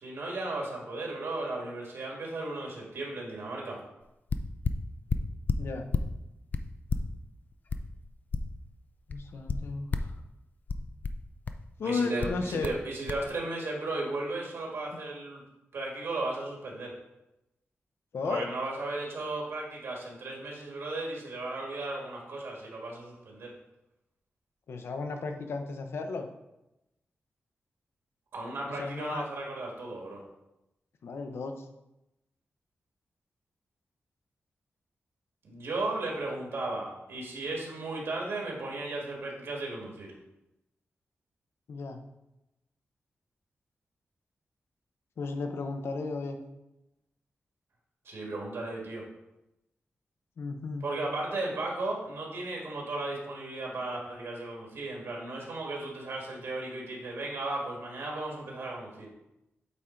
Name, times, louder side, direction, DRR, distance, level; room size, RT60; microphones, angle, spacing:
voice 1, 0.0-3.8 11.8-15.4 15.7-16.9 18.3-23.5 28.3-30.2 35.4-40.1 48.1-49.0 50.8-59.1, right 2 dB, 75° right, -1 dB, 1.9 m, -35 dB
sound 1, 4.0-4.1 4.3-6.1 6.5-8.8 9.1-10.2 10.7-11.7 12.2-12.8 13.1-13.3, left 4 dB, 40° left, 0.4 m, -32 dB
voice 2, 5.6-5.9 9.1-10.1 10.7-10.8 11.8-12.7 18.1-18.5 24.7-26.3 28.7-29.3 31.0-31.6 41.7-42.0 45.2-46.4 50.4-50.9, left 4 dB, 70° left, 6 dB, 0.7 m, -34 dB
8.2 x 3.8 x 4.4 m, 0.92 s
wide cardioid pair, 180°, 4 cm